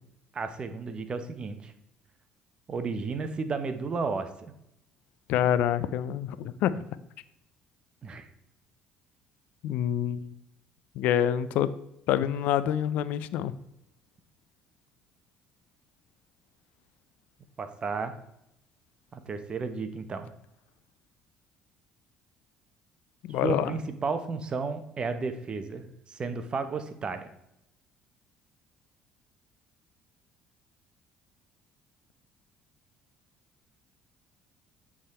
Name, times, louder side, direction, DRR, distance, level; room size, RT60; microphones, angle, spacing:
voice 1, 0.3-1.7 2.7-4.5 8.0-8.3 17.6-18.1 19.1-20.3 23.4-27.3, right 4 dB, 35° right, 9 dB, 0.8 m, -33 dB
voice 2, 5.3-6.8 9.6-10.3 11.0-11.7 12.1-13.5 23.2-23.7, left 10 dB, 75° left, 15 dB, 0.4 m, -27 dB
8.6 x 3.7 x 4.2 m, 0.78 s
cardioid pair, 95°, 3 cm